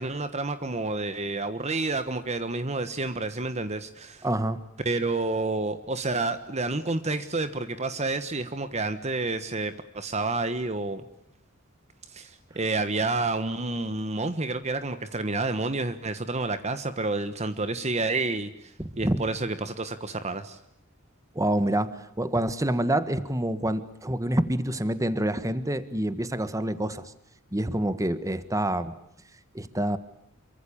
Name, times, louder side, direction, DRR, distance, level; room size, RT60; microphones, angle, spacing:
voice 1, 0.0-4.2 4.8-11.0 12.1-20.6, right 3 dB, 30° right, 11 dB, 1.3 m, -29 dB
voice 2, 4.2-4.6 18.8-19.2 21.3-27.1 27.5-28.9 29.5-30.0, right 1 dB, 15° right, 13 dB, 1.5 m, -27 dB
27.5 x 24.0 x 8.7 m, 0.72 s
head